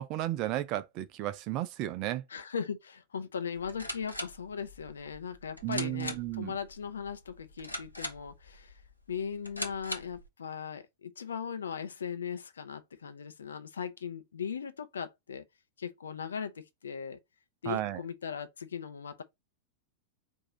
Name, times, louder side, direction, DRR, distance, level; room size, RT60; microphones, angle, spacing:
voice 1, 0.0-2.2 5.6-6.5 17.7-18.0, right 14 dB, 40° right, 0.6 m, -33 dB
voice 2, 2.3-8.7 9.1-15.4 15.8-17.2 17.6-19.2, left 7 dB, 70° left, 0.7 m, -38 dB
sound 1, 3.5-10.3, left 1 dB, 85° left, 1.1 m, -42 dB
4.8 x 2.8 x 3.9 m
figure-of-eight pair, 90°, 0 cm